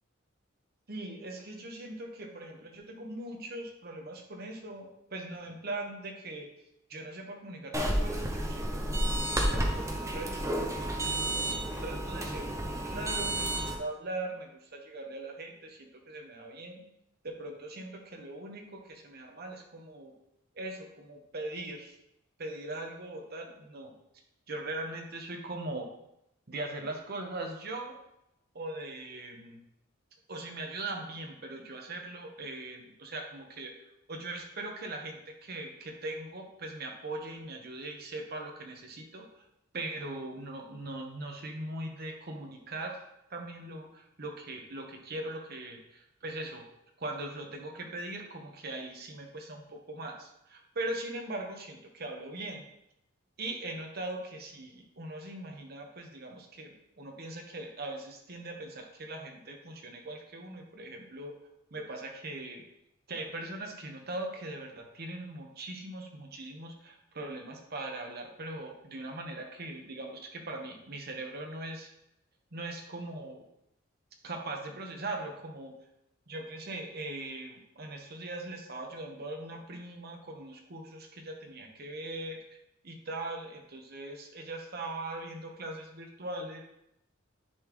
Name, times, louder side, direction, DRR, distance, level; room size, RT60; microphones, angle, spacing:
voice 1, 0.9-6.5 6.9-11.0 11.4-11.5 11.8-16.8 17.2-20.1 20.5-22.0 22.4-23.9 24.5-25.9 26.5-28.0 28.5-29.7 30.3-33.7 34.1-39.4 39.7-43.0 43.3-46.7 47.0-52.7 53.4-61.3 61.7-62.6 63.1-71.9 72.5-73.4 74.2-75.7 76.3-82.4 82.8-86.6, right 2 dB, 50° right, 2 dB, 1.1 m, -40 dB
sound 1, 7.7-13.8, right 1 dB, 15° right, 0.7 m, -31 dB
10.0 x 4.1 x 3.1 m, 0.81 s
head